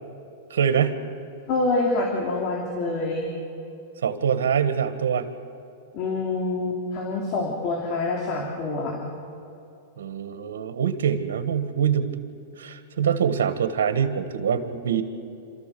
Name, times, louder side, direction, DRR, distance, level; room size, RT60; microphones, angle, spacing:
voice 1, 0.5-1.0 4.0-5.3 10.0-12.1 12.6-15.0, right 8 dB, 90° right, 9 dB, 1.5 m, -24 dB
voice 2, 1.5-3.3 5.9-9.0, left 2 dB, 45° left, 0 dB, 3.3 m, -26 dB
27.5 x 14.0 x 6.9 m, 2.8 s
hypercardioid pair, 135°, 0 cm